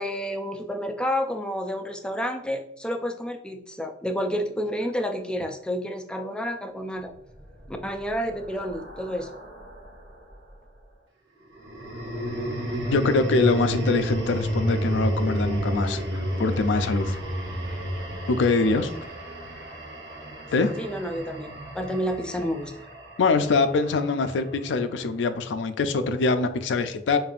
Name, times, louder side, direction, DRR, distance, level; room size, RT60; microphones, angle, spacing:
voice 1, 0.0-7.1 7.7-9.3 18.8-18.9 20.8-22.7, equal, 5° left, 5 dB, 0.3 m, -30 dB
sound 1, 7.4-9.9 11.5-23.8, right 1 dB, 70° right, 1.0 m, -31 dB
voice 2, 12.8-17.2 18.3-18.9 20.5-20.7 23.2-27.2, left 3 dB, 80° left, 10 dB, 0.4 m, -23 dB
5.1 x 2.6 x 2.4 m, 0.73 s
head